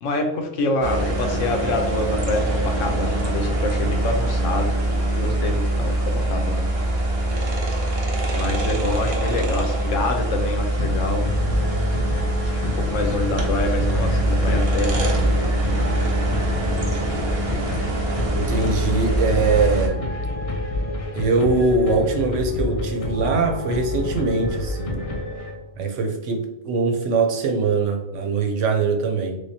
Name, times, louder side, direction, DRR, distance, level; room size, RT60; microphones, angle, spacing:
voice 1, 0.0-4.8 5.1-6.7 8.3-11.2 12.9-14.9, left 2 dB, 80° left, 4 dB, 1.0 m, -26 dB
sound 1, 0.8-19.9, right 1 dB, 40° right, 0.6 m, -23 dB
sound 2, 10.8-25.8, left 2 dB, 65° left, 0.3 m, -28 dB
voice 2, 18.3-20.0 21.1-25.0 25.8-29.4, right 3 dB, 80° right, 4 dB, 1.0 m, -22 dB
3.4 x 3.2 x 2.7 m, 0.91 s
omnidirectional pair, 1.3 m